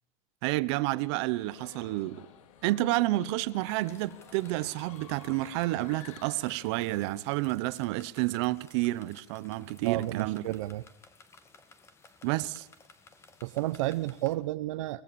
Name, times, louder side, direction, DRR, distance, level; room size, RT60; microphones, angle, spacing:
voice 1, 0.4-2.3 2.6-10.4 12.2-12.7, right 18 dB, 60° right, 1.0 m, -30 dB
sound 1, 1.3-7.2, left 9 dB, 85° left, 2.7 m, -53 dB
sound 2, 3.7-14.4, left 3 dB, 15° left, 1.9 m, -57 dB
voice 2, 9.8-10.8 13.4-15.0, right 16 dB, 80° right, 0.8 m, -31 dB
24.5 x 18.0 x 7.1 m
supercardioid pair, 150°, 16 cm